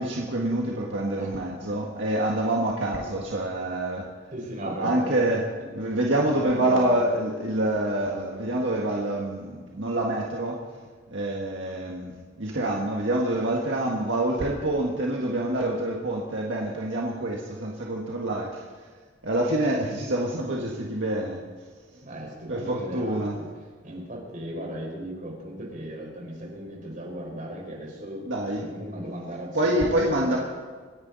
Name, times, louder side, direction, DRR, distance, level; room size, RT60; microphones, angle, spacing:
voice 1, 0.0-4.1 4.6-5.4 5.7-10.6 11.1-18.9 19.2-21.4 22.5-23.4 28.3-28.7 29.5-30.4, right 1 dB, 75° right, -2 dB, 1.7 m, -26 dB
voice 2, 4.3-5.3 6.3-6.9 22.0-23.5 23.8-28.2 28.6-30.4, equal, 45° right, -1 dB, 5.0 m, -37 dB
26.0 x 10.5 x 4.1 m, 1.5 s
head